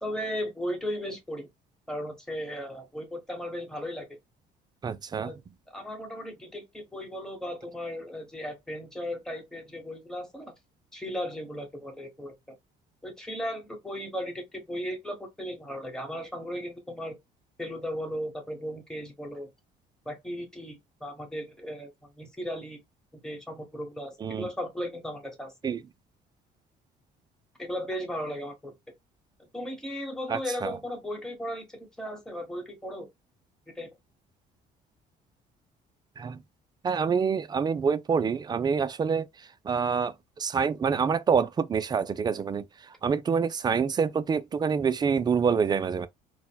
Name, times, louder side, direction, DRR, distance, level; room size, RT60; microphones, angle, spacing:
voice 1, 0.0-1.5 1.9-4.1 5.2-10.5 10.9-12.6 13.0-17.2 17.6-19.5 20.0-21.9 22.2-22.8 23.1-25.5 27.6-28.7 29.4-33.1 33.7-34.0, equal, 5° left, 1.2 m, -36 dB
voice 2, 4.8-5.3 24.2-24.5 25.6-25.8 30.3-30.7 36.2-36.4 36.8-39.3 39.7-42.6 43.0-46.1, right 6 dB, 25° right, 0.3 m, -26 dB
4.0 x 2.1 x 2.2 m
cardioid pair, 110°, 17 cm